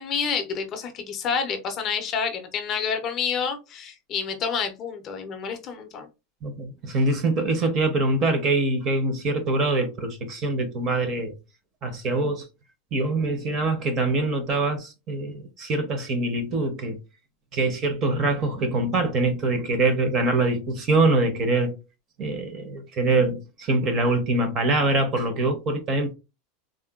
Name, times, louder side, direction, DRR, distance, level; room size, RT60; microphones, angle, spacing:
voice 1, 0.0-6.1, left 6 dB, 25° left, 0.5 m, -28 dB
voice 2, 6.4-11.3 11.8-12.5 12.9-17.0 17.5-21.7 22.2-26.1, right 2 dB, 25° right, 0.6 m, -24 dB
3.5 x 2.1 x 2.2 m
supercardioid pair, 175°, 0 cm